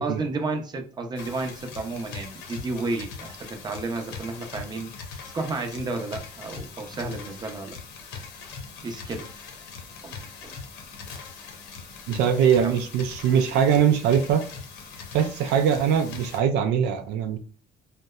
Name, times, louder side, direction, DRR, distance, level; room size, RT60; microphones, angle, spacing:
voice 1, 0.0-7.8 8.8-9.3 10.0-10.5 12.6-12.7, right 3 dB, 25° right, 0.6 m, -32 dB
sound 1, 1.2-16.4, left 5 dB, 85° left, 0.6 m, -41 dB
voice 2, 12.1-14.4 15.1-17.4, right 8 dB, 85° right, 0.4 m, -22 dB
2.7 x 2.1 x 2.2 m
cardioid pair, 110°, 17 cm